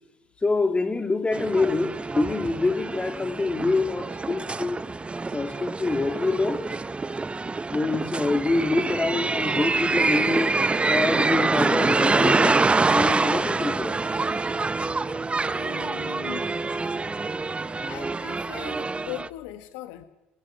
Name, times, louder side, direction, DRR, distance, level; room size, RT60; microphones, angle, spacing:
voice 1, 0.4-4.8 5.3-6.6 7.7-10.6 10.9-14.0, left 3 dB, 20° left, 3.3 m, -25 dB
sound 1, 1.3-19.3, right 3 dB, 20° right, 1.0 m, -26 dB
voice 2, 15.4-16.4 17.8-20.0, left 15 dB, 75° left, 1.4 m, -39 dB
30.0 x 12.0 x 9.2 m
hypercardioid pair, 55°, 5 cm